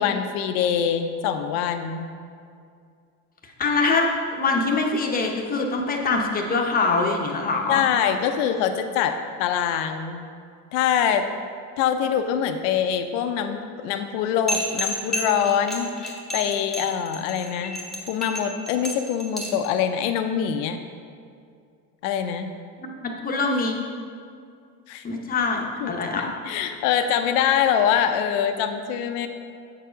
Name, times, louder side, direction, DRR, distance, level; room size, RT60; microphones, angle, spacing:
voice 1, 0.0-2.1 7.7-10.2 10.7-11.3 11.8-17.8 18.1-20.8 22.0-22.5 24.9-25.0 25.8-29.3, left 8 dB, 80° left, 7 dB, 0.7 m, -24 dB
voice 2, 3.6-7.8 22.8-23.8 25.0-26.3, left 3 dB, 20° left, 1 dB, 0.7 m, -24 dB
sound 1, 14.5-19.7, equal, ahead, 1.0 m, -30 dB
7.5 x 4.7 x 5.0 m, 2.3 s
cardioid pair, 140°, 39 cm